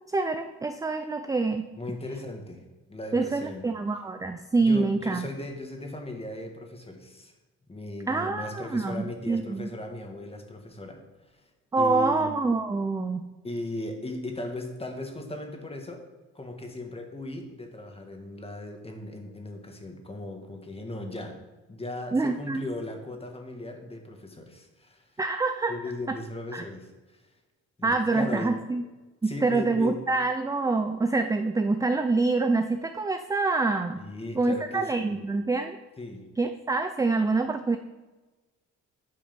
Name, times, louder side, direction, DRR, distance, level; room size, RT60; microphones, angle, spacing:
voice 1, 0.1-1.7 3.1-5.3 8.1-9.7 11.7-13.3 22.1-22.6 25.2-25.7 26.5-26.6 27.8-28.8 29.2-34.0 34.4-35.8 36.4-37.8, right 3 dB, 10° right, 8 dB, 0.4 m, -26 dB
voice 2, 1.8-2.6 2.9-3.6 4.6-7.3 7.7-11.0 11.8-12.4 13.4-16.0 16.3-21.4 21.7-25.1 25.7-27.2 27.8-28.5 29.2-29.9 34.0-35.3 36.0-36.2, left 1 dB, 20° left, 3 dB, 1.6 m, -37 dB
9.2 x 5.1 x 5.2 m, 1.2 s
cardioid pair, 90°, 30 cm